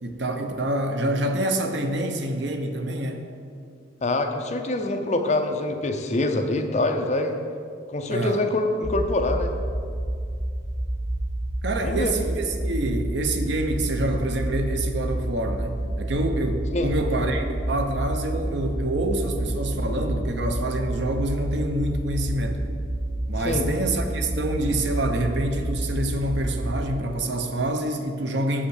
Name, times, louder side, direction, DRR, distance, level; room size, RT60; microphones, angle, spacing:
voice 1, 0.0-3.3 8.1-8.4 11.6-22.6 23.3-28.7, right 1 dB, 70° right, 5 dB, 0.8 m, -27 dB
voice 2, 4.0-7.4 7.9-9.5 11.8-12.1 16.7-16.9 23.4-23.7, left 2 dB, 35° left, 5 dB, 0.6 m, -25 dB
sound 1, 8.8-27.0, right 1 dB, 40° right, 1.1 m, -29 dB
7.1 x 5.7 x 6.4 m, 2.3 s
head